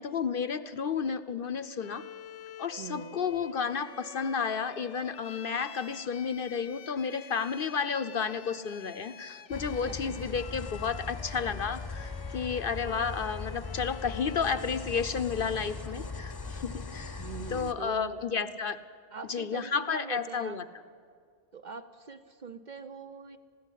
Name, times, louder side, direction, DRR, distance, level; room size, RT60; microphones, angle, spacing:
voice 1, 0.0-2.0 2.6-17.2 17.5-18.8 19.3-20.6, left 6 dB, 55° left, 13 dB, 0.8 m, -32 dB
Bowed string instrument, 1.8-15.0, left 7 dB, 80° left, 1.1 m, -48 dB
voice 2, 2.8-3.3 9.9-10.2 17.2-18.2 19.1-20.6 21.5-23.4, right 5 dB, 45° right, 9 dB, 0.8 m, -43 dB
sound 1, 9.5-17.7, left 4 dB, 20° left, 0.8 m, -40 dB
20.5 x 15.5 x 10.0 m, 2.1 s
omnidirectional pair, 1.2 m